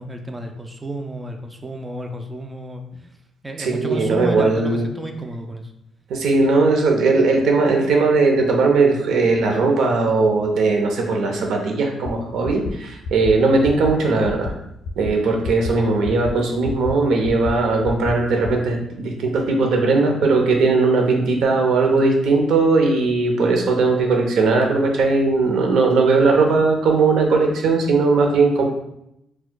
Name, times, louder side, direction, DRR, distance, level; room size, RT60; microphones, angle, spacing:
voice 1, 0.0-3.1 3.4-5.7, right 1 dB, 15° right, 4 dB, 0.3 m, -31 dB
voice 2, 3.6-4.8 6.1-14.5 15.0-28.6, right 3 dB, 75° right, 2 dB, 0.6 m, -18 dB
sound 1, 12.1-12.2 12.4-12.7 13.0-13.3 13.6-13.9 14.2-14.5 14.8-15.1 15.4-15.7 16.0-16.3 16.6-16.9 17.2-17.5 17.8-18.1 18.4-18.5, left 3 dB, 85° left, 0.4 m, -28 dB
4.4 x 2.2 x 2.2 m, 0.80 s
cardioid pair, 155°, 0 cm